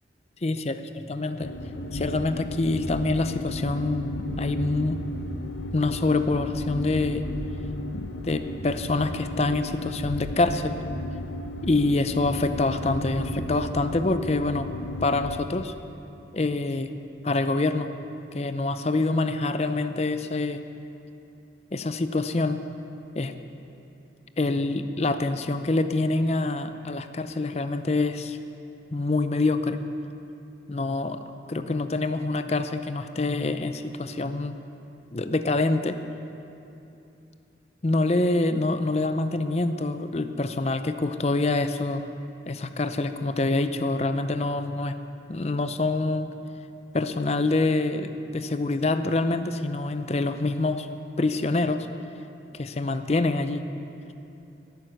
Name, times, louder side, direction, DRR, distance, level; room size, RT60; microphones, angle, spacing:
voice 1, 0.4-0.8 1.1-1.5 1.9-4.1 4.4-5.0 5.7-7.3 7.9-10.8 11.6-14.7 15.0-15.7 16.3-16.9 17.2-17.9 18.3-20.6 21.7-22.6 23.1-23.3 24.4-28.4 28.9-29.8 30.7-31.2 31.5-34.5 35.1-36.0 37.8-42.1 42.5-44.9 45.3-46.3 46.9-50.9 51.2-51.9 52.5-53.6, left 2 dB, 35° left, 10 dB, 0.5 m, -26 dB
sound 1, 1.4-15.4, left 1 dB, 80° left, 0.8 m, -34 dB
17.0 x 9.4 x 6.6 m, 2.8 s
head